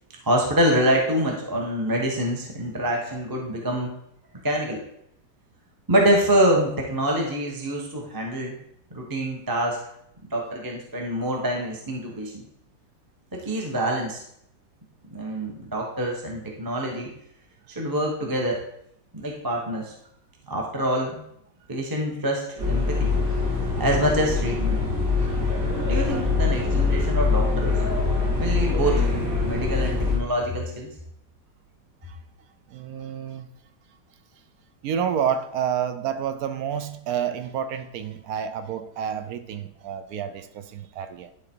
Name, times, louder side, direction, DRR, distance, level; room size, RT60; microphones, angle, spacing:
voice 1, 0.2-3.9 4.4-4.8 5.9-8.6 8.9-9.8 10.2-12.4 13.3-14.2 15.1-17.1 17.7-18.6 19.1-19.9 20.5-21.2 21.7-23.1 23.8-24.8 25.8-27.8 28.4-29.1 29.4-30.9, right 1 dB, 15° right, 0 dB, 0.8 m, -25 dB
sound 1, 22.6-30.2, left 4 dB, 45° right, 2.5 m, -23 dB
voice 2, 32.7-33.5 34.8-41.3, right 8 dB, 70° right, 10 dB, 0.9 m, -29 dB
10.5 x 3.9 x 4.5 m, 0.75 s
omnidirectional pair, 2.0 m